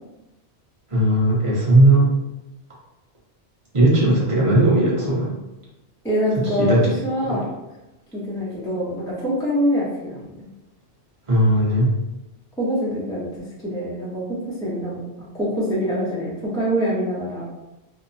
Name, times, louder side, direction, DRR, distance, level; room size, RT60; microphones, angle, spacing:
voice 1, 0.9-2.1 3.7-5.3 6.6-6.8 7.2-7.4 11.3-11.9, right 1 dB, 30° right, -5 dB, 0.8 m, -17 dB
voice 2, 6.0-6.8 7.0-7.5 8.1-10.2 12.6-13.3 13.6-14.2 14.6-17.4, equal, 5° left, -7 dB, 0.4 m, -24 dB
2.7 x 2.1 x 2.5 m, 0.98 s
omnidirectional pair, 1.2 m